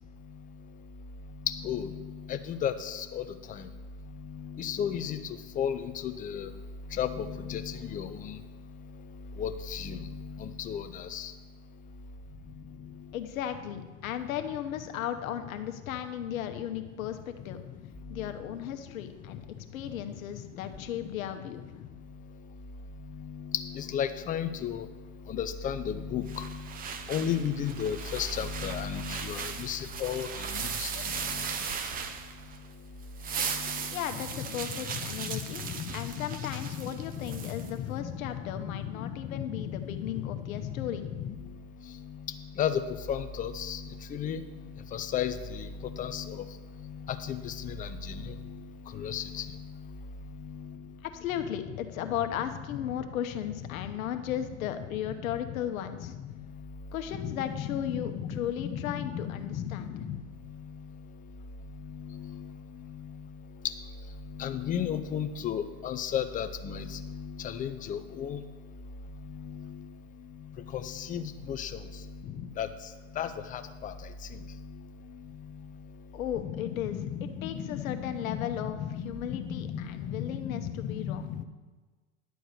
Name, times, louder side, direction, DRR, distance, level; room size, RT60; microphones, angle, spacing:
voice 1, 1.4-3.7 4.1-6.5 6.9-8.4 9.4-11.3 12.6-13.1 18.1-18.3 19.8-19.9 20.3-20.7 21.0-21.1 23.0-24.9 25.3-26.7 27.1-31.7 33.3-34.0 34.3-41.5 41.8-50.0 50.2-50.9 52.0-52.1 53.8-54.0 55.1-55.2 56.0-56.7 57.1-61.0 61.7-63.3 63.6-63.8 64.2-68.4 69.2-69.9 70.4-74.8 75.2-75.7 76.4-81.4, left 8 dB, 20° left, 9 dB, 0.6 m, -35 dB
voice 2, 13.1-17.6 18.1-19.4 19.7-21.6 33.9-41.0 51.0-56.1 56.9-59.9 76.1-78.8 79.0-81.4, left 10 dB, 80° left, 7 dB, 1.1 m, -36 dB
sound 1, 26.3-32.7 33.0-37.7, right 6 dB, 20° right, 0.6 m, -37 dB
10.5 x 4.7 x 8.2 m, 1.3 s
supercardioid pair, 130°, 40 cm